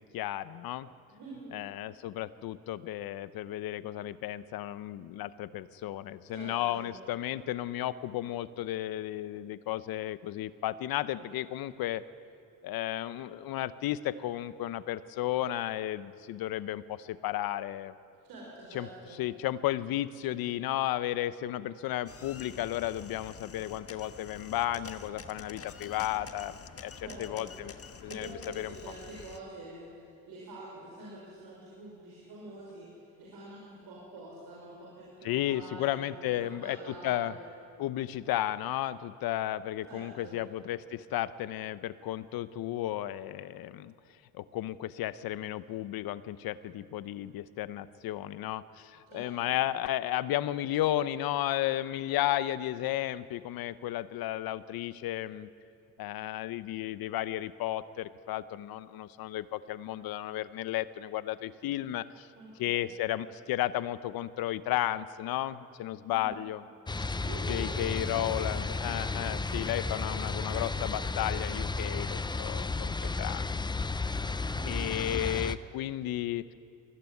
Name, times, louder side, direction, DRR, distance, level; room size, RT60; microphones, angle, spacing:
voice 1, 0.1-0.9 1.5-12.0 12.6-17.9 18.7-18.9 19.2-27.7 28.0-28.3 28.6-28.7 35.2-37.3 37.8-43.9 44.3-55.5 56.0-62.3 62.6-66.6 67.5-73.5 74.7-76.5, left 13 dB, 70° left, 15 dB, 0.9 m, -33 dB
voice 2, 1.1-1.6 6.3-6.9 18.2-19.2 27.0-27.5 28.1-37.5 39.9-40.4 49.1-49.6 62.4-62.8 66.1-66.4 67.2-68.8 74.4-75.5, right 2 dB, 75° right, -4 dB, 5.5 m, -46 dB
sound 1, 22.1-29.4, left 6 dB, 40° left, 1.5 m, -47 dB
sound 2, 66.9-75.5, left 3 dB, 10° left, 0.7 m, -33 dB
21.0 x 15.5 x 9.6 m, 2.5 s
supercardioid pair, 70°, 37 cm